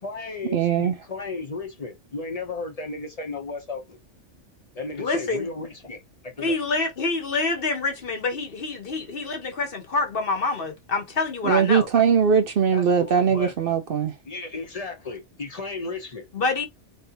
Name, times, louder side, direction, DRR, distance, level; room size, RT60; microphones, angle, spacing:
voice 1, 0.0-4.0 4.7-6.5 12.7-13.5 14.3-16.3, left 3 dB, 35° left, 0.9 m, -34 dB
voice 2, 0.5-1.0 11.4-14.1, right 7 dB, 60° right, 0.7 m, -20 dB
voice 3, 5.0-5.5 6.4-11.9 16.3-16.6, left 3 dB, 55° left, 1.1 m, -26 dB
3.2 x 2.7 x 2.6 m
omnidirectional pair, 1.2 m